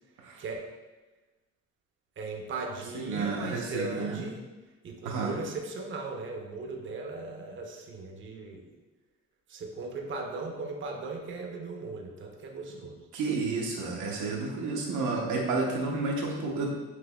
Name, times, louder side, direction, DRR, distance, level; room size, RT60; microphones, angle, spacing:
voice 1, 2.2-4.4 4.8-8.7 9.5-13.1, right 3 dB, 40° right, 1 dB, 0.6 m, -38 dB
voice 2, 3.1-4.2 5.0-5.3 13.1-16.7, right 3 dB, 80° right, -2 dB, 0.8 m, -31 dB
6.0 x 2.9 x 2.3 m, 1.2 s
cardioid pair, 90°, 30 cm